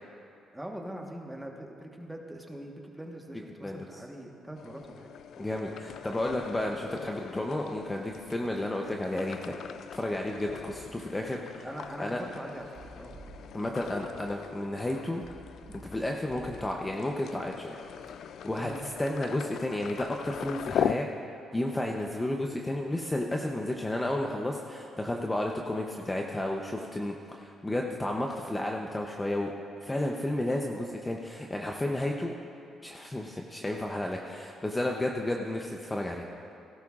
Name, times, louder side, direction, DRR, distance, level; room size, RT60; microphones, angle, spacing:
voice 1, 0.5-5.1 11.6-13.2 18.6-18.8, right 1 dB, 5° right, 1 dB, 1.3 m, -42 dB
sound 1, 4.6-20.9, left 9 dB, 70° left, 0.3 m, -40 dB
voice 2, 5.4-9.5 9.9-11.7 12.0-12.2 13.5-15.2 15.8-17.8 18.1-18.7 19.0-21.1 21.5-29.5 29.8-32.3 32.8-36.3, left 1 dB, 15° left, 1 dB, 0.7 m, -32 dB
sound 2, 8.0-8.3 10.2-11.1 12.6-13.9 14.9-17.1 17.8-19.0, right 1 dB, 30° right, 1.3 m, -52 dB
17.0 x 11.5 x 2.5 m, 2.6 s
cardioid pair, 90°, 0 cm